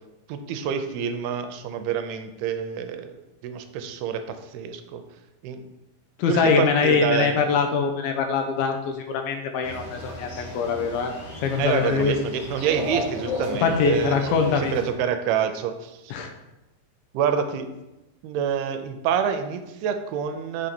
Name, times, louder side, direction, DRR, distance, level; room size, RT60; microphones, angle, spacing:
voice 1, 0.3-3.2 3.4-5.0 5.4-5.7 6.2-7.4 11.6-14.4 14.7-16.1 17.1-17.7 18.2-20.7, right 8 dB, 85° right, 8 dB, 2.5 m, -27 dB
voice 2, 6.2-11.1 11.4-12.1 13.5-14.7 16.1-16.3, left 5 dB, 80° left, 5 dB, 2.3 m, -23 dB
sound 1, 9.6-14.9, left 1 dB, 60° left, 1.5 m, -34 dB
6.4 x 4.9 x 4.3 m, 0.98 s
omnidirectional pair, 4.5 m